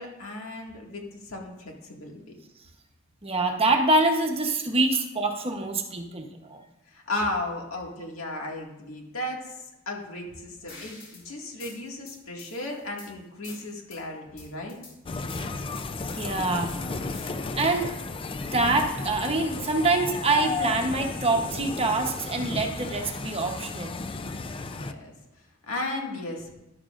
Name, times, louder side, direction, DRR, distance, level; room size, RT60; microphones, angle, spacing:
voice 1, 0.0-2.3 6.9-14.8 24.6-26.5, left 2 dB, 80° left, 0 dB, 2.0 m, -35 dB
voice 2, 3.2-6.6 16.1-16.7 17.1-17.9 18.3-23.9, right 2 dB, 30° right, 3 dB, 1.0 m, -25 dB
sound 1, 10.7-11.2 11.6-13.1 13.4-14.0 14.4-14.9 15.3-16.3 16.7-17.9, left 2 dB, 50° left, 4.1 m, -46 dB
sound 2, 15.0-24.9, left 3 dB, 25° left, 0.4 m, -34 dB
12.5 x 11.5 x 2.5 m, 0.96 s
head